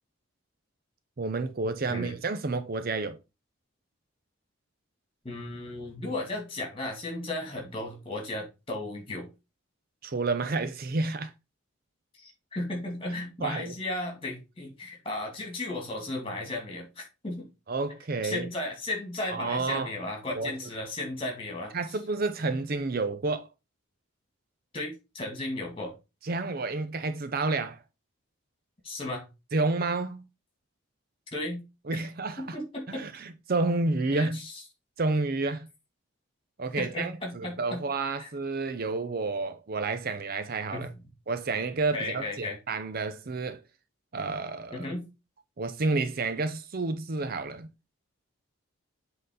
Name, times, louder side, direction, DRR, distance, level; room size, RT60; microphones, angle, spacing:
voice 1, 1.2-3.2 10.0-11.3 13.4-13.7 17.7-18.5 19.3-19.9 20.4-20.5 21.7-23.5 26.2-27.8 29.5-30.2 31.9-32.6 32.9-34.4 35.0-35.7 36.6-40.9 41.3-43.6 44.1-44.8 45.6-47.7, right 3 dB, 45° right, 0.6 m, -30 dB
voice 2, 5.2-9.3 12.2-17.5 18.2-22.0 24.7-25.9 28.8-29.2 31.3-31.6 31.9-32.0 32.4-33.0 34.1-34.6 36.8-37.8 38.2-38.3 40.7-41.0 41.9-42.6 44.7-45.0, left 2 dB, 25° left, 2.4 m, -35 dB
7.8 x 3.8 x 4.0 m
head